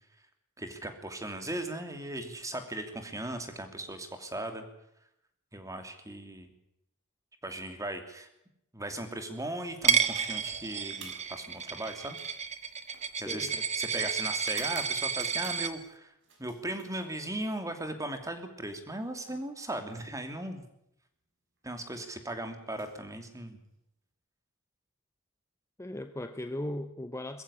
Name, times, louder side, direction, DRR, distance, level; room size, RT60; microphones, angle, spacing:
voice 1, 0.6-4.6 5.5-6.5 7.4-8.3 8.7-12.2 13.2-16.1 16.4-20.6 21.6-23.6, right 1 dB, 15° right, 7 dB, 2.9 m, -38 dB
Coin (dropping), 9.8-15.7, right 7 dB, 30° right, 1.4 m, -31 dB
sound 1, 10.9-15.8 16.2-17.5 18.7-20.5 21.6-21.8 22.6-23.8, right 4 dB, 60° right, 5.8 m, -55 dB
voice 2, 13.2-13.5 25.8-27.4, left 1 dB, 15° left, 8 dB, 0.8 m, -37 dB
22.0 x 14.5 x 9.9 m, 0.78 s
head